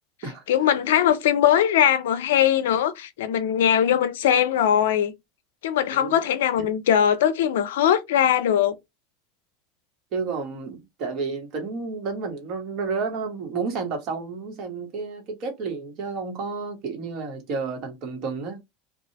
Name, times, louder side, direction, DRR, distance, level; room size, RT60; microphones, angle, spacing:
voice 1, 0.5-5.1 5.6-8.8, left 10 dB, 75° left, 0.4 m, -20 dB
voice 2, 10.1-18.6, right 4 dB, 55° right, 1.2 m, -31 dB
2.8 x 2.3 x 2.8 m
hypercardioid pair, 90°, 0 cm